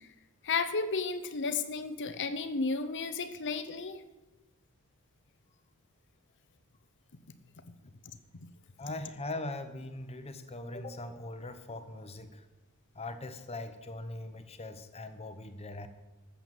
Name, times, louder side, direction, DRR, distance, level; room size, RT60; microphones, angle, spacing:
voice 1, 0.4-4.0, left 4 dB, 55° left, 11 dB, 0.7 m, -33 dB
voice 2, 8.8-12.4 12.9-15.9, left 2 dB, 30° left, 9 dB, 1.0 m, -41 dB
13.5 x 7.0 x 7.7 m, 1.1 s
head